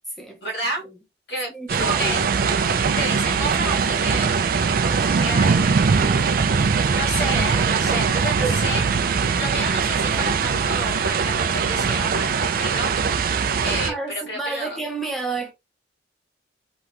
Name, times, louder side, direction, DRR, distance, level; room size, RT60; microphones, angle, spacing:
voice 1, 0.4-0.8 1.3-1.5 1.8-2.2 3.0-4.3 4.8-6.5 6.9-8.8 9.1-13.0 13.6-14.8, right 1 dB, 60° left, 2.0 m, -30 dB
voice 2, 1.5-2.2 4.8-5.4 8.4-8.5 13.9-15.5, right 3 dB, ahead, 0.7 m, -30 dB
sound 1, 1.7-13.9, right 5 dB, 50° right, 0.3 m, -21 dB
3.3 x 2.9 x 2.5 m
head